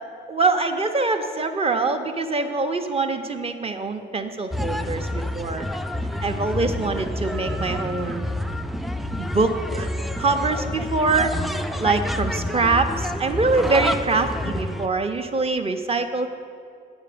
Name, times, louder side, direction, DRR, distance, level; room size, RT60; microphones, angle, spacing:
voice 1, 0.3-5.7 6.2-8.4 9.2-9.9 10.2-11.3 11.8-16.3, right 3 dB, 30° right, 6 dB, 0.7 m, -24 dB
sound 1, 4.5-14.9, left 1 dB, ahead, 0.3 m, -28 dB
8.9 x 4.8 x 6.8 m, 2.3 s
cardioid pair, 90°, 20 cm